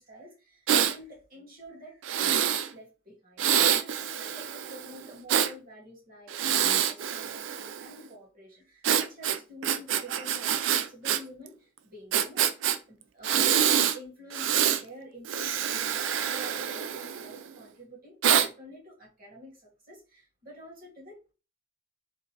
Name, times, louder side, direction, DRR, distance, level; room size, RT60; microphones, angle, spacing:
voice 1, 0.0-12.6 12.9-21.3, equal, 50° right, 1.8 m, -48 dB
Breathing, 0.7-0.9 2.0-2.7 3.4-5.5 6.3-7.9 8.8-11.2 11.5-11.6 12.1-12.8 13.2-14.0 14.3-14.8 15.2-17.4 18.2-18.5, right 9 dB, 75° right, 0.4 m, -26 dB
3.8 x 2.6 x 2.9 m
head